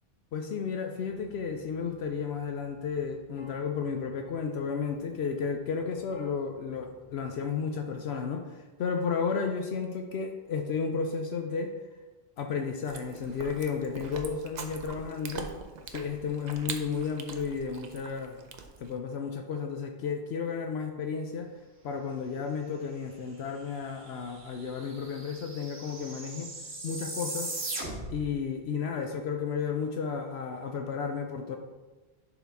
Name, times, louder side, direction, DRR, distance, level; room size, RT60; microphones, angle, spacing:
voice 1, 0.3-11.8 12.4-15.5 15.9-18.4 18.8-21.5 21.8-26.5 26.8-27.5 28.1-31.6, left 5 dB, 75° left, 5 dB, 0.9 m, -33 dB
Keyboard (musical), 0.9-7.8, left 4 dB, 30° left, 0.8 m, -56 dB
Chewing mastication, 12.8-19.0, right 5 dB, 50° right, 0.7 m, -43 dB
sound 1, 23.8-23.9 24.1-28.3, right 2 dB, 80° right, 1.7 m, -39 dB
10.5 x 4.0 x 3.5 m, 1.2 s
omnidirectional pair, 1.1 m